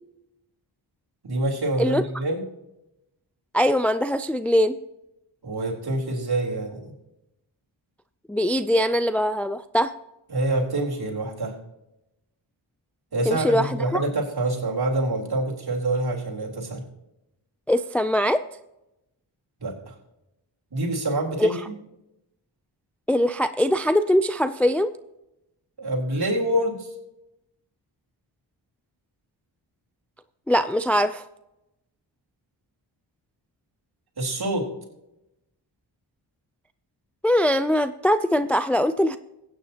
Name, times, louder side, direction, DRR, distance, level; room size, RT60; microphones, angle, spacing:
voice 1, 1.2-2.4 5.4-6.9 10.3-11.5 13.1-16.8 19.6-19.9 20.7-21.7 25.8-26.9 34.2-34.7, right 2 dB, 50° right, -1 dB, 3.8 m, -26 dB
voice 2, 3.5-4.8 8.3-9.9 13.3-14.0 17.7-18.4 21.4-21.6 23.1-24.9 30.5-31.2 37.2-39.2, equal, 5° left, 11 dB, 0.4 m, -22 dB
16.0 x 9.4 x 2.9 m, 0.89 s
cardioid pair, 55°, 48 cm